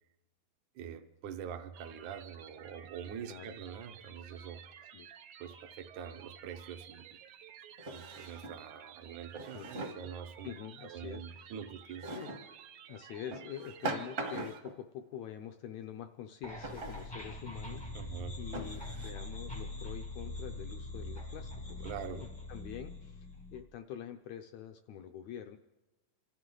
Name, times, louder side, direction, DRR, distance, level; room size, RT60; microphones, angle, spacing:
voice 1, 0.8-4.7 5.4-7.2 7.9-10.5 10.8-12.1 17.9-18.4 21.8-22.2, right 8 dB, 75° right, 8 dB, 2.1 m, -44 dB
sound 1, 1.7-14.6, right 9 dB, 90° right, 2.7 m, -53 dB
Drawer open or close, 6.4-6.5 7.8-8.6 9.3-10.1 12.0-12.5 13.3-14.8 16.6-17.1 17.8-17.9 18.5-19.1, right 2 dB, 45° right, 0.9 m, -41 dB
voice 2, 10.4-11.5 12.1-12.3 12.9-17.9 18.4-25.6, left 9 dB, 80° left, 7 dB, 1.6 m, -46 dB
sound 2, 16.4-23.6, left 2 dB, 20° left, 0.6 m, -43 dB
28.0 x 13.5 x 3.8 m, 1.1 s
omnidirectional pair, 3.9 m